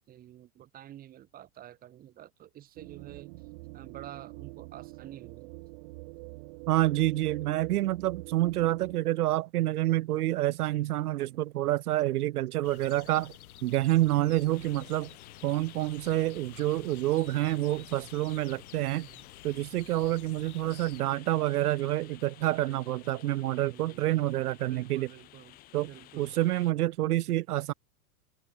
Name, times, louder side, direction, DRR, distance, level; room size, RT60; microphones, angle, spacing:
voice 1, 0.0-3.3 3.7-5.7 14.2-14.7 18.8-19.3 20.4-21.2 23.4-25.6 25.8-26.3, right 12 dB, 20° right, 4.6 m, -49 dB
sound 1, 2.8-9.0, right 27 dB, 35° right, 2.1 m, -45 dB
voice 2, 6.7-13.3 13.6-15.1 15.4-19.1 19.4-25.1 25.7-25.9 26.2-27.7, right 15 dB, 70° right, 0.8 m, -28 dB
sound 2, 12.6-21.0, left 13 dB, 65° left, 4.1 m, -51 dB
sound 3, 14.5-26.7, left 17 dB, 20° left, 1.4 m, -54 dB
open air
supercardioid pair, 170°, 47 cm